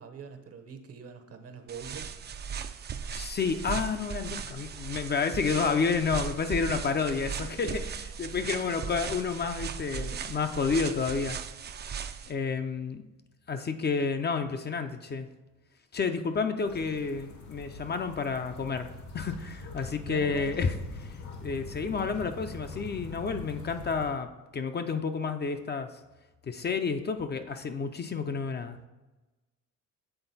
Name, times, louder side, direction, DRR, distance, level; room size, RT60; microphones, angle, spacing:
voice 1, 0.0-2.1 6.8-7.5 8.5-8.8 19.8-20.6, right 6 dB, 50° right, 7 dB, 0.9 m, -44 dB
sound 1, 1.7-12.3, right 7 dB, 35° right, 0.4 m, -37 dB
voice 2, 3.1-11.4 12.3-13.0 13.5-15.3 15.9-18.9 19.1-20.7 21.0-24.3 24.5-25.9 26.5-28.8, left 5 dB, 35° left, 7 dB, 0.5 m, -30 dB
sound 2, 16.7-24.1, left 2 dB, 70° left, 1.2 m, -43 dB
7.9 x 3.8 x 4.0 m, 1.1 s
cardioid pair, 90°, 30 cm